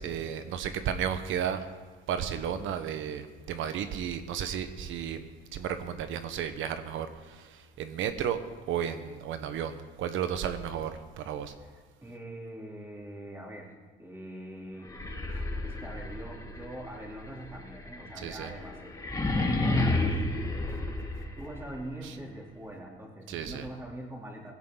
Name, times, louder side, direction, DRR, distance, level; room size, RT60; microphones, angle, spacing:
voice 1, 0.0-1.6 2.1-5.2 5.5-7.1 7.8-8.4 8.7-10.9 11.2-11.5 18.2-18.5 23.3-23.6, right 8 dB, 70° right, 9 dB, 1.1 m, -33 dB
voice 2, 11.5-14.9 15.3-20.1 21.4-24.5, right 1 dB, 10° right, -2 dB, 3.2 m, -43 dB
sound 1, 14.8-21.7, left 2 dB, 15° left, 1.9 m, -31 dB
19.0 x 16.0 x 3.9 m, 1.4 s
cardioid pair, 125°, 21 cm